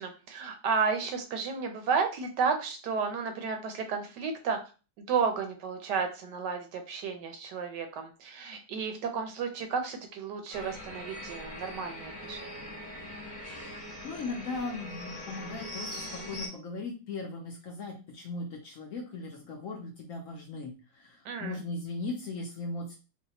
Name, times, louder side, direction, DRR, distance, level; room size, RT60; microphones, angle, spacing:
voice 1, 0.0-4.6 5.0-12.4 21.2-21.6, right 5 dB, 80° right, 5 dB, 1.3 m, -32 dB
sound 1, 10.5-16.5, left 1 dB, 10° left, 1.0 m, -42 dB
voice 2, 14.0-22.9, left 3 dB, 60° left, 1 dB, 0.9 m, -38 dB
3.9 x 2.2 x 2.8 m, 0.33 s
omnidirectional pair, 1.8 m